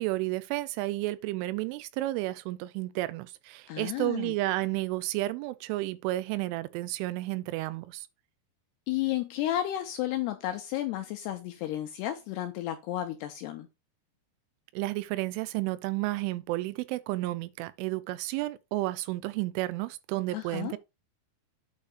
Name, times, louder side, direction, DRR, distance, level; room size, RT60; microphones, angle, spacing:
voice 1, 0.0-8.1 14.7-20.8, right 18 dB, 90° right, 3.2 m, -32 dB
voice 2, 3.7-4.3 8.9-13.7 20.3-20.7, left 13 dB, 80° left, 2.4 m, -32 dB
8.5 x 3.3 x 6.4 m
omnidirectional pair, 5.5 m